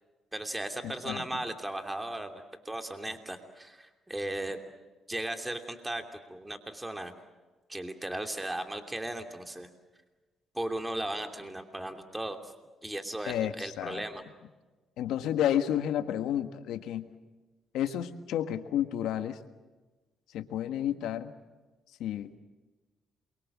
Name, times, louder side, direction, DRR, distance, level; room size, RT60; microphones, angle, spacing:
voice 1, 0.3-4.6 5.1-7.1 7.7-9.7 10.5-12.5 12.8-14.2, right 1 dB, 10° right, 6 dB, 2.9 m, -36 dB
voice 2, 0.8-1.2 13.3-14.0 15.0-17.1 17.7-19.4 20.3-21.3 22.0-22.4, left 10 dB, 85° left, 9 dB, 1.6 m, -31 dB
28.0 x 24.0 x 7.4 m, 1.2 s
cardioid pair, 90°, 0 cm